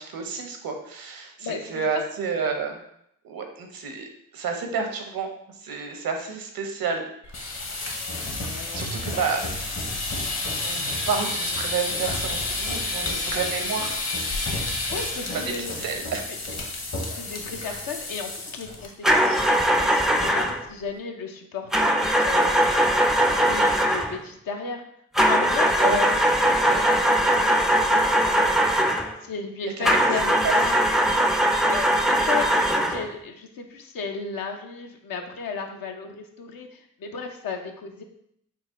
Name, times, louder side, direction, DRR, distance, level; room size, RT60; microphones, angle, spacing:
voice 1, 0.0-2.8 3.2-4.1 4.3-5.3 5.6-7.0 7.3-7.5 8.7-9.4 10.6-14.0 15.8-16.3 17.6-17.8 25.8-26.0 29.6-29.9 30.4-30.5, right 5 dB, 75° right, 4 dB, 0.7 m, -30 dB
voice 2, 1.4-2.1 8.4-9.3 14.9-16.0 16.3-16.4 17.1-19.5 19.8-22.9 23.3-24.8 25.3-27.0 27.2-28.5 29.2-30.8 31.6-38.0, left 5 dB, 70° left, 4 dB, 0.6 m, -34 dB
sound 1, 7.2-18.9 19.2-19.5 19.8-19.9 20.2-20.7, left 2 dB, 50° left, 1.0 m, -30 dB
sound 2, 19.0-20.6 21.7-24.2 25.2-29.1 29.8-33.1, right 1 dB, ahead, 0.3 m, -20 dB
4.0 x 2.3 x 3.6 m, 0.72 s
supercardioid pair, 45°, 35 cm